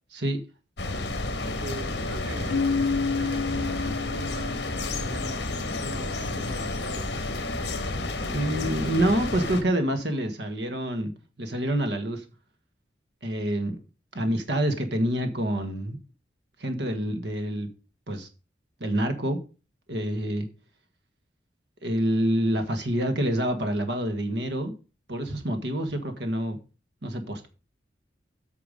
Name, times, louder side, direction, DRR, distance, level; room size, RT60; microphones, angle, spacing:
sound 1, 0.8-9.6, left 2 dB, 65° left, 1.6 m, -31 dB
voice 1, 1.4-2.8 3.0-5.5 5.8-7.1, right 2 dB, 90° right, 1.3 m, -42 dB
Keyboard (musical), 2.5-5.1, left 4 dB, 90° left, 0.4 m, -29 dB
voice 2, 8.2-11.1 11.4-12.2 13.2-13.8 14.1-16.0 16.6-17.7 18.1-18.3 18.8-19.4 19.9-20.5 21.8-24.7 25.1-26.6 27.0-27.5, right 1 dB, 70° right, 1.4 m, -27 dB
8.7 x 5.8 x 5.2 m
head